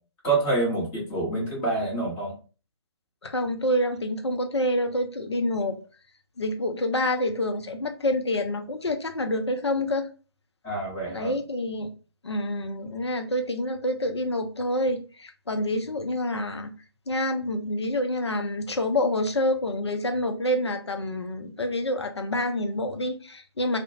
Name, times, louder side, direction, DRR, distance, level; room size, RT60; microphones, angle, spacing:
voice 1, 0.2-2.3 10.6-11.3, right 2 dB, 15° left, -5 dB, 1.0 m, -27 dB
voice 2, 3.2-5.8 6.4-10.1 11.1-11.9 12.2-16.7 17.1-23.8, left 1 dB, 80° left, 6 dB, 0.5 m, -27 dB
2.4 x 2.1 x 2.7 m, 0.35 s
figure-of-eight pair, 135°, 14 cm